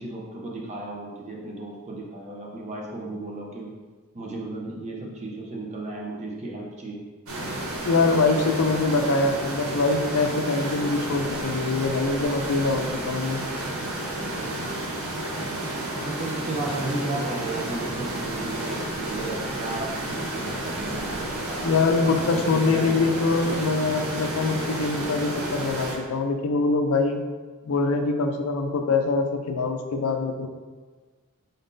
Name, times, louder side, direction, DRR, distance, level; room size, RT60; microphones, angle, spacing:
voice 1, 0.0-3.7 4.1-7.0 15.9-21.6 22.0-23.4, right 2 dB, 30° right, -1 dB, 0.5 m, -34 dB
sound 1, 7.3-26.0, right 1 dB, 70° right, 0.8 m, -31 dB
voice 2, 7.8-13.4 21.6-27.2 27.6-30.5, left 3 dB, 75° left, 5 dB, 0.4 m, -24 dB
3.9 x 2.6 x 3.6 m, 1.4 s
head